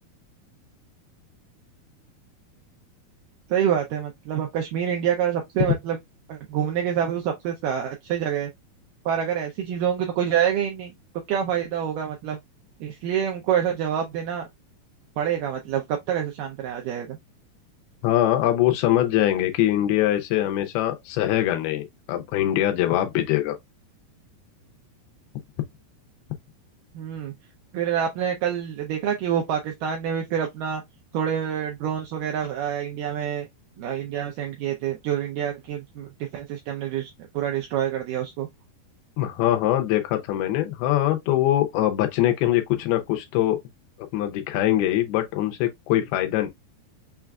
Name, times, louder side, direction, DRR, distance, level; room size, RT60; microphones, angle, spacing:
voice 1, 3.5-6.0 6.3-8.5 9.1-10.9 11.3-12.4 12.8-14.5 15.2-17.2 27.0-27.3 27.7-30.8 31.1-33.5 33.8-38.5, right 9 dB, 85° right, 1.9 m, -27 dB
voice 2, 18.0-23.6 39.2-43.6 44.1-46.5, left 13 dB, 80° left, 2.6 m, -23 dB
6.3 x 2.4 x 2.3 m
omnidirectional pair, 4.5 m